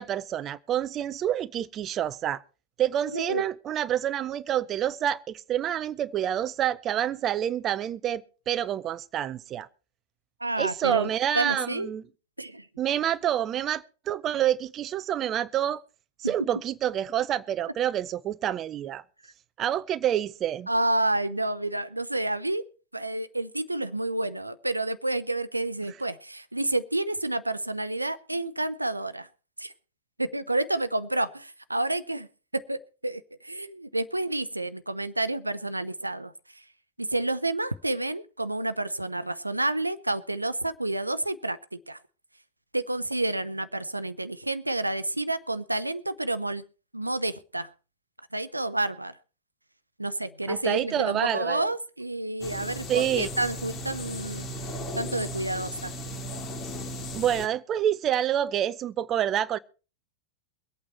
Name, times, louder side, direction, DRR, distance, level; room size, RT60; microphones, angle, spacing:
voice 1, 0.0-2.4 2.8-9.7 10.6-12.0 12.8-15.8 16.2-19.0 19.6-20.7 50.5-51.7 52.9-53.3 57.1-59.6, right 10 dB, 30° right, 0.6 m, -28 dB
voice 2, 3.1-3.4 10.4-11.1 11.3-11.9 12.4-12.7 16.2-16.3 20.7-22.6 22.9-29.3 29.6-29.7 30.2-32.3 32.5-36.6 37.0-42.0 42.7-46.6 46.9-47.7 48.3-49.2 50.0-54.4 54.9-55.9, right 2 dB, 85° right, 0.8 m, -29 dB
sound 1, 52.4-57.5, equal, 30° left, 2.5 m, -36 dB
23.0 x 8.7 x 4.3 m
figure-of-eight pair, 90°, 0 cm